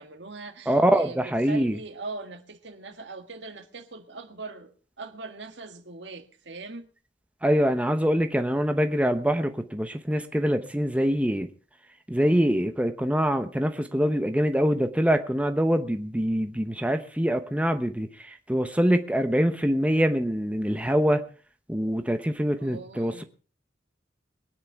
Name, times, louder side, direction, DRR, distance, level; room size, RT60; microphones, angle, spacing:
voice 1, 0.0-6.9 22.6-23.3, right 3 dB, 70° right, 1.7 m, -41 dB
voice 2, 0.7-1.8 7.4-11.5 12.1-21.2 21.7-23.1, equal, 5° right, 0.9 m, -24 dB
21.5 x 9.6 x 4.7 m
head